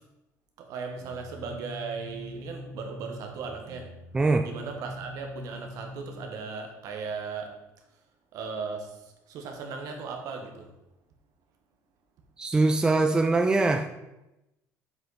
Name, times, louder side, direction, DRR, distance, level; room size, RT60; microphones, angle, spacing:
voice 1, 0.6-3.9 4.4-7.6 7.9-8.0 8.3-10.7, right 5 dB, 60° right, 3 dB, 1.5 m, -37 dB
sound 1, 1.0-6.3, left 1 dB, 85° right, 2.1 m, -44 dB
voice 2, 4.1-4.5 12.4-13.9, right 3 dB, 10° right, 7 dB, 0.4 m, -22 dB
7.5 x 5.3 x 4.2 m, 0.94 s
cardioid pair, 145°, 7 cm